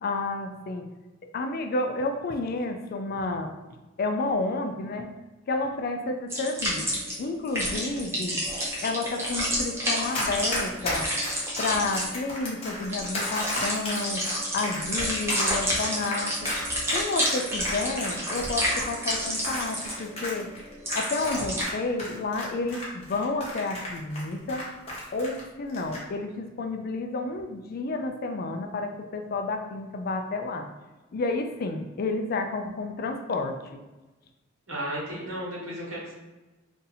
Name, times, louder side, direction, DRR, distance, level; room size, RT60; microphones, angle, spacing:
voice 1, 0.0-0.9 1.2-3.5 4.0-5.1 5.5-6.9 7.2-8.4 8.8-11.1 11.6-14.2 14.5-16.3 16.9-20.5 20.9-24.6 25.1-30.7 31.1-33.8, left 3 dB, 50° left, 5 dB, 0.4 m, -30 dB
sound 1, 6.3-21.6, equal, 15° right, 0.7 m, -30 dB
Run, 10.1-21.7 22.0-25.4 25.7-26.0, left 1 dB, 30° left, 0.9 m, -34 dB
voice 2, 34.7-36.1, right 1 dB, 75° right, -5 dB, 1.3 m, -34 dB
2.7 x 2.6 x 4.0 m, 1.2 s
head